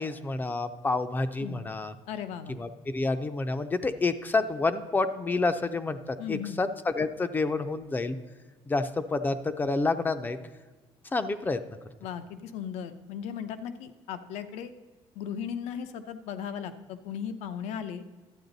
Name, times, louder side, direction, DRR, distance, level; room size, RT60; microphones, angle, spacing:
voice 1, 0.0-1.9 2.6-6.0 6.3-8.2 8.7-10.4 11.1-11.6, left 3 dB, 15° left, 10 dB, 0.4 m, -28 dB
voice 2, 2.1-2.6 6.2-6.6 12.0-14.7 15.1-18.0, left 8 dB, 90° left, 10 dB, 0.7 m, -37 dB
12.0 x 8.7 x 4.0 m, 1.3 s
cardioid pair, 160°, 11 cm